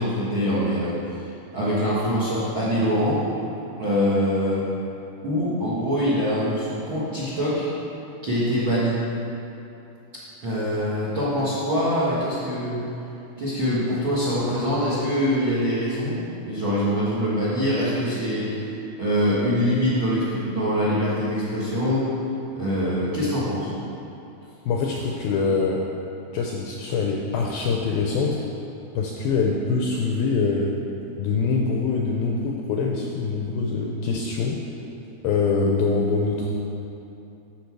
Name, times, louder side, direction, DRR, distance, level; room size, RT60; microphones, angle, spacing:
voice 1, 0.0-3.2 3.8-4.6 5.2-7.7 8.2-9.0 10.4-12.8 13.4-22.1 22.5-23.7, equal, 60° right, -8 dB, 1.3 m, -24 dB
voice 2, 24.7-25.8 26.3-28.4 29.0-30.7 31.2-34.6 35.2-36.6, left 4 dB, 80° left, 0 dB, 2.2 m, -24 dB
12.0 x 7.0 x 4.7 m, 2.8 s
omnidirectional pair, 5.0 m